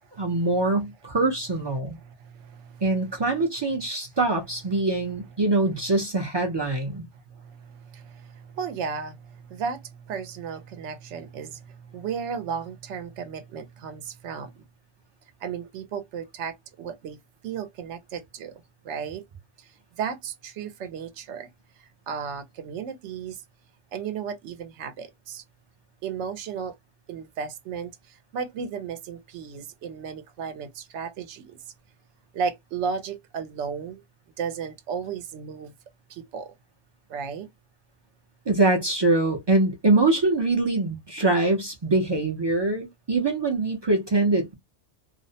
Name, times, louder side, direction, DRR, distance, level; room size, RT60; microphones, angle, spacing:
voice 1, 0.2-2.0 2.8-7.1 38.5-44.5, right 2 dB, 40° right, 0.4 m, -23 dB
voice 2, 2.0-2.8 7.3-14.6 15.4-17.2 17.4-19.2 19.6-21.5 21.8-23.4 23.9-25.4 26.0-26.7 27.1-31.6 32.3-34.0 34.4-35.7 36.1-36.5 37.1-37.5, right 6 dB, 85° right, 0.9 m, -34 dB
2.4 x 2.0 x 2.6 m
omnidirectional pair, 1.2 m